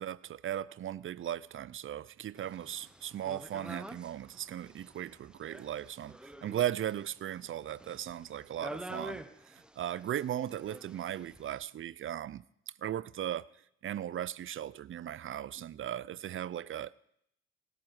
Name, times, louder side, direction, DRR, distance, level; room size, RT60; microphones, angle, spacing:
voice 1, 0.0-12.4 12.8-13.5 13.8-16.9, right 11 dB, 45° right, 0.5 m, -37 dB
sound 1, 2.4-11.6, right 1 dB, 5° right, 0.8 m, -48 dB
17.0 x 7.9 x 6.4 m
cardioid pair, 90°, 30 cm